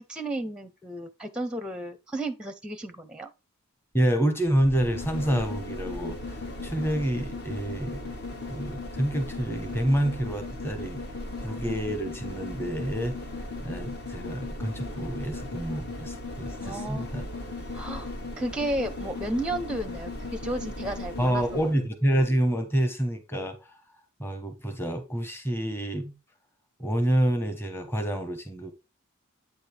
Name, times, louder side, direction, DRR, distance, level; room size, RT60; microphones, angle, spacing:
voice 1, 0.0-3.3 16.6-17.1 17.7-21.7, right 1 dB, 5° right, 0.6 m, -33 dB
voice 2, 3.9-8.0 8.5-11.0 11.4-13.2 13.6-17.2 21.2-23.7 24.2-26.1 26.8-28.7, right 1 dB, 10° left, 1.2 m, -28 dB
sound 1, 4.4-21.8 22.2-22.3, left 2 dB, 50° left, 1.6 m, -37 dB
8.7 x 5.2 x 3.3 m
head